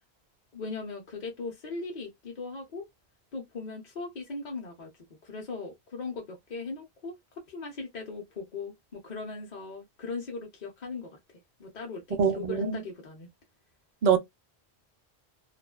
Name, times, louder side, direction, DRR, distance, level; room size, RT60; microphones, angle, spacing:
voice 1, 0.5-2.9 3.3-4.9 5.2-7.1 7.5-11.2 11.6-13.3, left 4 dB, 50° left, 0.7 m, -38 dB
voice 2, 12.2-12.8 14.0-14.2, right 7 dB, 55° right, 0.5 m, -23 dB
2.4 x 2.2 x 2.2 m
omnidirectional pair, 1.1 m